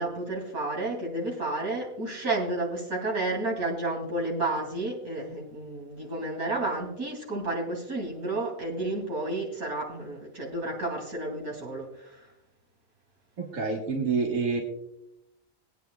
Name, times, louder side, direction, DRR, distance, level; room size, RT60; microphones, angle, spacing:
voice 1, 0.0-12.2, right 2 dB, 90° right, -1 dB, 3.4 m, -31 dB
voice 2, 13.4-14.6, right 4 dB, 65° right, -1 dB, 1.9 m, -27 dB
21.5 x 9.2 x 2.3 m, 0.82 s
omnidirectional pair, 1.5 m